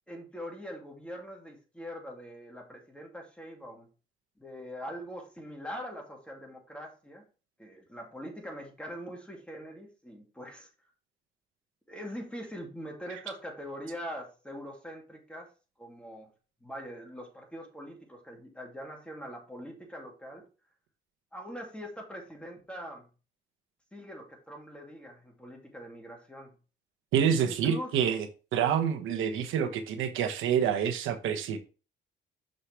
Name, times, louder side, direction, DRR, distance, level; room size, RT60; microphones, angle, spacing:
voice 1, 0.1-3.9 4.4-7.2 7.6-10.7 11.9-15.5 15.8-16.3 16.6-20.4 21.3-23.1 23.9-26.5 27.4-27.9, equal, 5° left, 0 dB, 2.7 m, -43 dB
voice 2, 27.1-28.3 28.5-31.6, right 8 dB, 85° right, 7 dB, 1.2 m, -27 dB
6.6 x 5.7 x 3.4 m, 0.34 s
cardioid pair, 90°, 20 cm